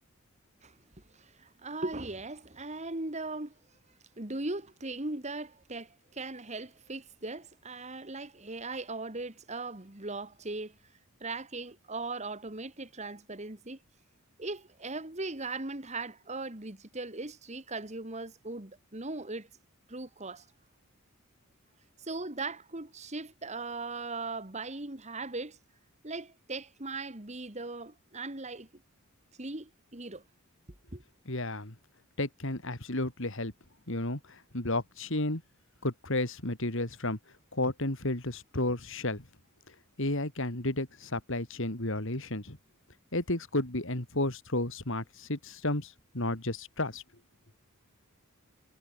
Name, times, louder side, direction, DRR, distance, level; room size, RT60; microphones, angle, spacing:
voice 1, 0.6-3.6 4.2-10.8 11.2-13.8 14.4-19.5 19.9-20.5 22.0-25.6 26.0-28.7 29.4-30.2 30.9-31.0, right 3 dB, 30° right, 2.0 m, -39 dB
voice 2, 31.3-31.7 32.2-33.5 33.9-35.4 35.8-37.2 37.5-39.2 40.0-42.6 43.1-47.0, left 2 dB, 60° left, 3.1 m, -32 dB
head